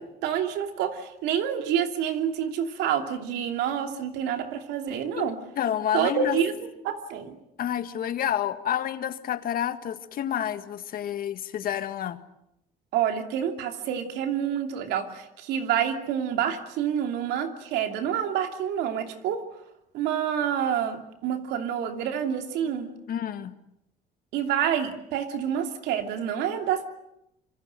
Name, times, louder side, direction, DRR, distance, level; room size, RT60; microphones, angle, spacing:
voice 1, 0.0-5.4 5.9-6.5 6.8-7.4 12.9-19.4 19.9-22.9 24.3-26.9, right 9 dB, 90° right, 6 dB, 2.8 m, -28 dB
voice 2, 5.6-6.4 7.6-12.2 23.1-23.5, left 10 dB, 60° left, 11 dB, 1.8 m, -29 dB
26.5 x 24.5 x 7.7 m, 0.80 s
cardioid pair, 110°, 17 cm